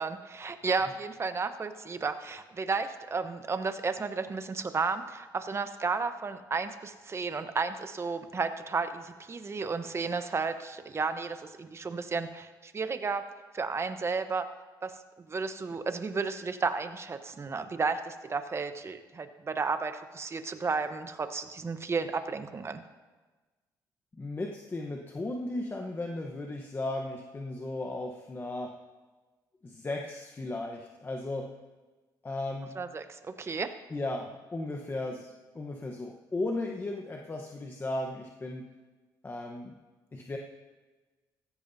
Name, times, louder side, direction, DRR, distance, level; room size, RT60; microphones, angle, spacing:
voice 1, 0.0-13.3 13.5-14.5 14.8-15.0 15.3-22.8 32.8-33.7, right 4 dB, 35° right, 9 dB, 1.0 m, -33 dB
voice 2, 24.2-28.8 29.6-31.5 32.2-32.8 33.9-38.7 39.2-39.8 40.1-40.4, left 2 dB, 25° left, 1 dB, 1.1 m, -36 dB
16.0 x 14.5 x 2.8 m, 1.3 s
cardioid pair, 80°, 8 cm